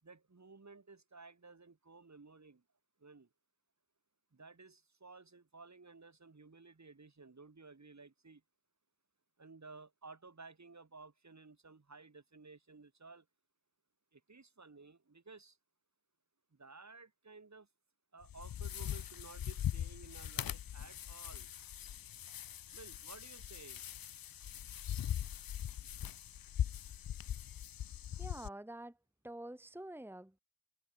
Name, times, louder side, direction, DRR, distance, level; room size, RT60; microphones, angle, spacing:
voice 1, 0.0-2.6 3.0-3.3 4.3-8.4 9.4-13.3 14.1-15.6 16.5-17.7 18.1-21.5 22.7-23.8, right 3 dB, 55° right, 3.0 m, -56 dB
sound 1, 18.2-28.5, left 10 dB, 85° left, 0.5 m, -41 dB
voice 2, 28.2-29.0 29.2-30.4, right 1 dB, 5° right, 1.4 m, -47 dB
open air
cardioid pair, 45°, 34 cm